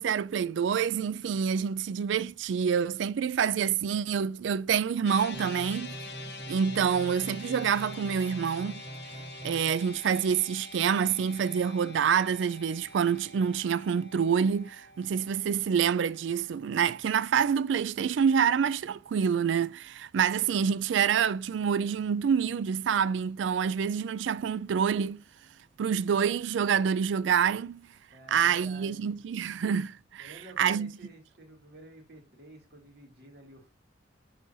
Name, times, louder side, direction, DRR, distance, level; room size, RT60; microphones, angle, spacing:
voice 1, 0.0-5.9 6.5-8.8 9.4-25.2 25.8-27.8 28.3-30.9, right 7 dB, 80° right, 0.3 m, -27 dB
sound 1, 5.0-17.5, left 3 dB, 60° left, 0.8 m, -47 dB
sound 2, 5.3-9.7, right 1 dB, 30° right, 0.6 m, -43 dB
voice 2, 28.1-29.2 30.2-33.7, right 2 dB, 60° right, 2.5 m, -51 dB
10.0 x 3.9 x 2.6 m
head